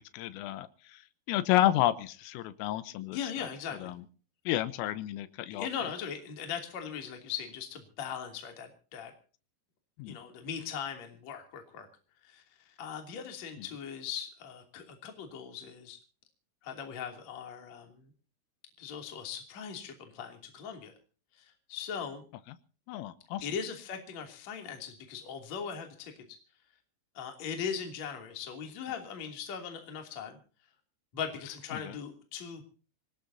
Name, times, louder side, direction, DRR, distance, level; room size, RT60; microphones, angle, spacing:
voice 1, 0.1-1.0 1.3-3.5 3.8-4.0 4.5-5.7 10.0-10.2 22.9-23.5 31.7-32.0, left 13 dB, 90° left, 14 dB, 3.6 m, -31 dB
voice 2, 3.1-3.9 5.5-9.1 10.1-11.9 12.2-16.0 16.6-18.1 18.8-20.9 21.4-22.3 23.4-26.4 27.2-30.4 31.1-32.7, left 7 dB, 40° left, 4 dB, 3.6 m, -39 dB
25.5 x 19.5 x 2.8 m, 0.39 s
omnidirectional pair, 5.7 m